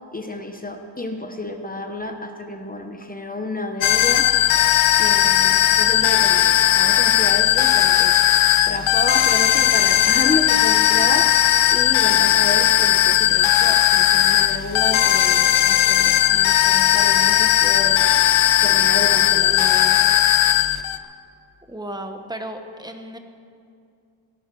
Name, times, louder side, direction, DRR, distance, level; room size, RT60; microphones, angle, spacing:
voice 1, 0.1-4.3 5.0-8.2 8.7-18.0 18.6-20.1, left 2 dB, 20° left, 5 dB, 0.9 m, -30 dB
sound 1, 3.8-21.0, left 12 dB, 85° left, 0.8 m, -17 dB
voice 2, 21.7-23.2, right 1 dB, 10° right, 5 dB, 1.1 m, -34 dB
18.0 x 11.5 x 6.1 m, 2.4 s
wide cardioid pair, 150°, 48 cm